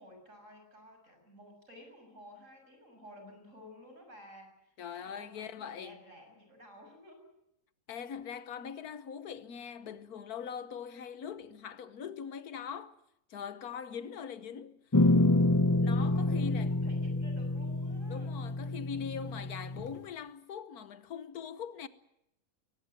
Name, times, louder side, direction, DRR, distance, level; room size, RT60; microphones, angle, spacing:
voice 1, 0.0-7.3 16.0-18.3, equal, 55° right, 7.0 m, -53 dB
voice 2, 4.8-6.0 7.9-12.9 13.3-14.8 15.8-16.8 18.1-21.9, left 7 dB, 85° left, 1.5 m, -42 dB
sound 1, 14.9-19.9, left 2 dB, 20° left, 0.5 m, -28 dB
22.0 x 19.5 x 7.8 m
omnidirectional pair, 1.6 m